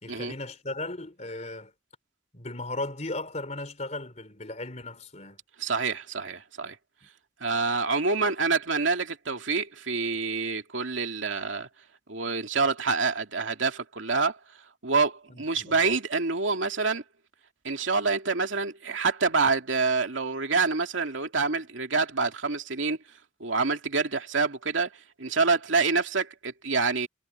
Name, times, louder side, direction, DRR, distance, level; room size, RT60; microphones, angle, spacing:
voice 1, 0.0-1.7 2.3-5.4 15.3-16.0, left 2 dB, 35° left, 3.8 m, -36 dB
voice 2, 5.6-6.8 7.4-11.7 12.1-14.4 14.8-17.0 17.6-23.0 23.4-24.9 25.2-27.1, right 4 dB, 85° right, 2.5 m, -27 dB
head